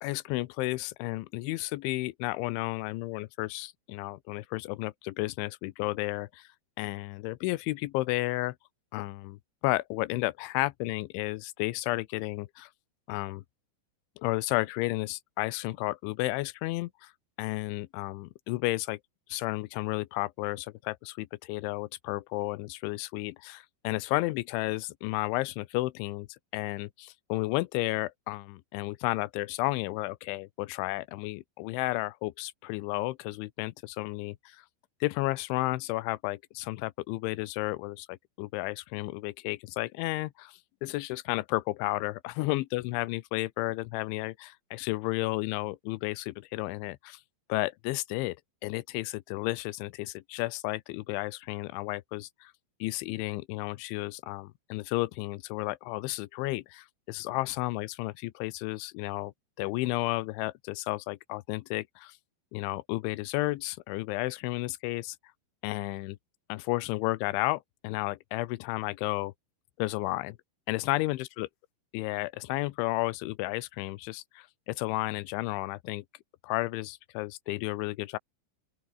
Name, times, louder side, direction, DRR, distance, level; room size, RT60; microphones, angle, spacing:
voice 1, 0.0-6.5 6.8-8.6 8.9-12.7 13.1-13.4 14.2-17.1 17.4-19.0 19.3-34.7 35.0-47.2 47.5-48.4 48.6-52.5 52.8-59.3 59.6-62.2 62.5-65.2 65.6-66.2 66.5-69.3 69.8-70.4 70.7-71.5 71.9-76.0 76.4-78.2, left 20 dB, 90° left, 3.1 m, -32 dB
open air
omnidirectional pair, 5.5 m